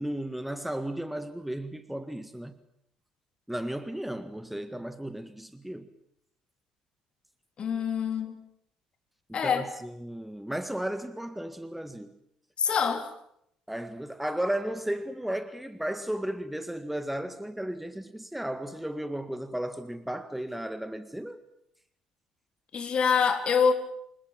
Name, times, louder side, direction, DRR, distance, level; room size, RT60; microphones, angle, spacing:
voice 1, 0.0-2.6 3.5-5.9 9.3-12.1 13.7-21.4, right 1 dB, 5° right, 1.8 m, -34 dB
voice 2, 7.6-8.4 9.3-9.7 12.6-13.1 22.7-23.7, left 6 dB, 45° left, 3.8 m, -25 dB
27.0 x 20.0 x 7.5 m
figure-of-eight pair, 55°, 2 cm